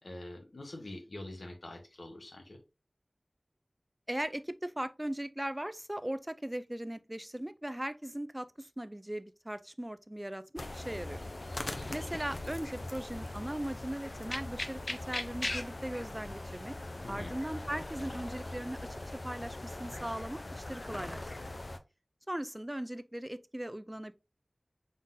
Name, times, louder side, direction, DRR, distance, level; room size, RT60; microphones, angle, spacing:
voice 1, 0.0-2.6 17.0-17.3, left 1 dB, 85° left, 1.0 m, -45 dB
voice 2, 4.1-11.2 11.9-16.7 17.1-19.0 19.2-21.5 22.3-24.1, right 1 dB, 20° right, 0.4 m, -39 dB
sound 1, 10.6-21.8, left 2 dB, 60° left, 0.5 m, -40 dB
3.9 x 3.7 x 2.6 m
wide cardioid pair, 45°, 0 cm